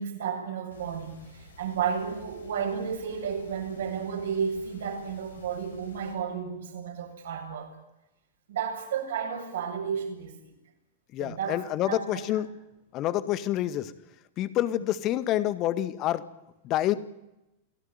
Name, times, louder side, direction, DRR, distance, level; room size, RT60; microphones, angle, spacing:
voice 1, 0.0-7.7 8.5-10.5 11.2-12.3, right 7 dB, 60° right, 3 dB, 7.2 m, -32 dB
sound 1, 0.7-6.1, left 3 dB, 70° left, 6.1 m, -52 dB
voice 2, 11.1-12.5 12.9-13.9 14.4-16.3 16.6-17.0, left 13 dB, 35° left, 15 dB, 1.8 m, -27 dB
28.5 x 17.0 x 9.6 m, 0.93 s
figure-of-eight pair, 90°, 0 cm